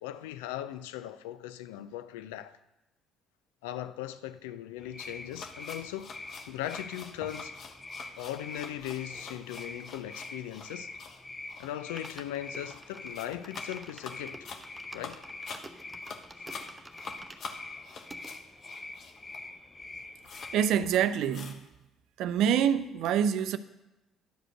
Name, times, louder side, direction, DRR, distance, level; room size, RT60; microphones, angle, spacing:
voice 1, 0.0-2.6 3.6-6.1 6.5-7.5 8.2-10.9 11.6-14.5 14.9-15.2, left 12 dB, 80° left, 0.4 m, -39 dB
sound 1, 4.8-20.8, left 2 dB, 25° left, 0.8 m, -45 dB
sound 2, 5.0-19.5 19.8-19.9 20.2-20.6 20.8-21.7, left 5 dB, 55° left, 1.1 m, -47 dB
sound 3, 8.3-11.1 11.4-11.5 11.8-18.3 18.9-19.0 19.2-19.3 19.6-20.5 20.8-20.9, right 2 dB, 15° right, 1.0 m, -52 dB
voice 2, 20.5-21.6 22.2-23.6, right 9 dB, 65° right, 0.5 m, -26 dB
11.0 x 5.0 x 6.5 m
hypercardioid pair, 55°, 0 cm